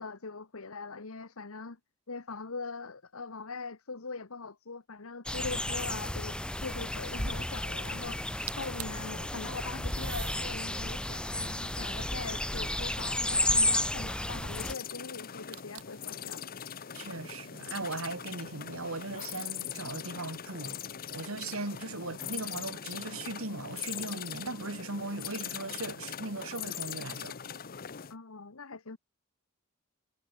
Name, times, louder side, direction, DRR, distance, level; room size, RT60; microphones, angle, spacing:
voice 1, 0.0-1.8 2.1-16.4 28.1-29.0, left 4 dB, 75° left, 1.3 m, -42 dB
sound 1, 5.3-14.7, left 1 dB, 5° left, 1.2 m, -32 dB
sound 2, 5.7-6.3 8.2-8.3 8.5-9.1 9.9-10.4 11.1-12.6 15.5-16.1, right 15 dB, 90° right, 2.0 m, -45 dB
sound 3, 14.5-28.1, left 9 dB, 45° left, 0.8 m, -41 dB
voice 2, 16.9-20.8 21.1-27.3, right 3 dB, 70° right, 2.9 m, -38 dB
head